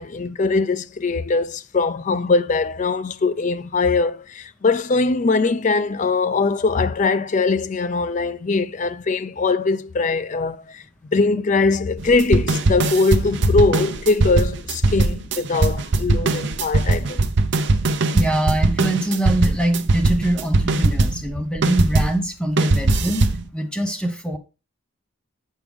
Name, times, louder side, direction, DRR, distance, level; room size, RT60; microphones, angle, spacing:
voice 1, 0.0-10.8 11.1-17.3, left 3 dB, 35° left, 0.4 m, -21 dB
sound 1, 12.0-22.2 22.6-23.4, right 2 dB, 55° right, 0.7 m, -20 dB
voice 2, 18.1-23.3 23.5-24.4, right 1 dB, 5° left, 1.0 m, -23 dB
7.9 x 6.3 x 3.4 m
head